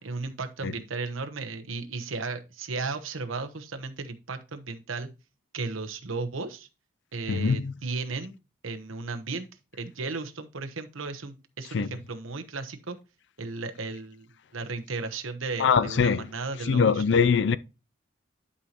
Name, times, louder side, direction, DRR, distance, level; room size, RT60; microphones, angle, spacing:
voice 1, 0.0-5.1 5.5-6.7 7.1-8.4 8.6-9.5 9.8-13.0 13.4-14.3 14.5-17.0, right 3 dB, 90° right, 1.1 m, -35 dB
voice 2, 7.3-7.7 11.7-11.9 15.6-16.3 16.6-17.6, left 6 dB, 60° left, 0.4 m, -22 dB
11.5 x 5.5 x 2.9 m
head